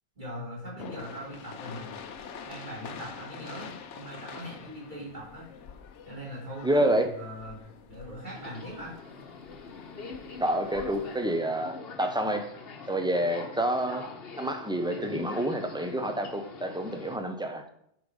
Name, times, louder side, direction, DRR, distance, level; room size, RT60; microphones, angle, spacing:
voice 1, 0.2-2.0 2.4-5.5 6.0-7.6 7.9-9.0, equal, 40° right, 4.4 m, -41 dB
sound 1, 0.8-11.3, left 6 dB, 75° left, 1.1 m, -46 dB
voice 2, 6.6-7.1 10.4-12.5 12.9-14.1 14.4-17.6, right 1 dB, 5° right, 0.7 m, -28 dB
Subway metro underground, 8.3-17.2, left 4 dB, 55° left, 1.2 m, -43 dB
9.6 x 5.2 x 5.5 m
omnidirectional pair, 1.2 m